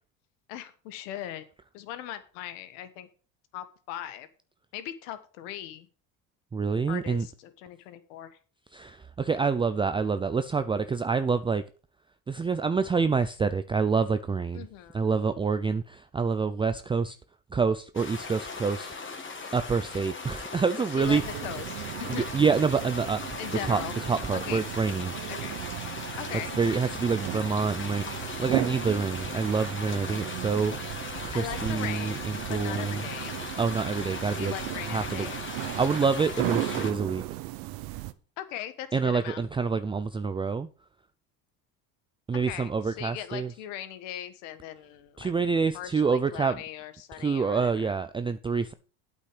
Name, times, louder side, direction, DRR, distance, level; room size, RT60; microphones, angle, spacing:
voice 1, 0.5-1.4 1.7-3.1 3.5-4.3 4.7-5.9 6.9-8.4 14.5-15.0 20.8-22.3 23.4-23.9 24.3-24.6 25.3-25.6 26.2-26.6 31.3-33.4 34.4-35.4 38.4-39.4 42.5-45.3 45.7-47.9, left 11 dB, 85° left, 1.4 m, -39 dB
voice 2, 6.5-7.3 8.7-11.6 12.3-14.6 14.9-17.2 17.5-18.9 19.5-21.2 22.1-23.2 23.6-25.1 26.6-33.0 33.6-34.5 34.9-35.3 35.7-37.2 38.9-40.7 42.3-43.5 45.2-46.6 47.2-48.7, right 5 dB, 15° right, 0.4 m, -27 dB
sound 1, 17.9-36.9, left 4 dB, 30° left, 2.3 m, -38 dB
sound 2, 21.0-38.1, right 17 dB, 70° right, 0.9 m, -36 dB
8.5 x 8.4 x 5.0 m
supercardioid pair, 100°, 37 cm